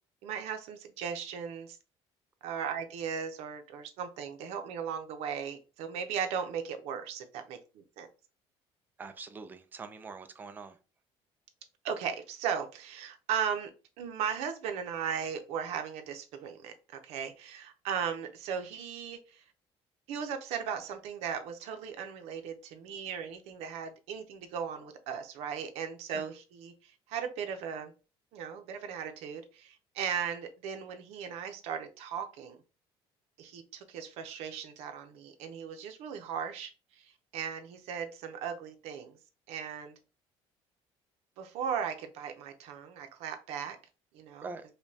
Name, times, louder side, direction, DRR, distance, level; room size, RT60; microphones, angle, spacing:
voice 1, 0.2-1.8 2.4-8.1 11.8-13.7 14.0-19.4 20.1-27.9 28.3-32.6 33.4-39.2 39.5-39.9 41.4-43.8 44.1-44.5, right 7 dB, 80° right, 7 dB, 0.7 m, -37 dB
voice 2, 9.0-10.8 26.1-26.3 44.4-44.6, right 4 dB, 15° right, 9 dB, 0.4 m, -44 dB
5.0 x 2.2 x 2.7 m, 0.33 s
cardioid pair, 165°, 11 cm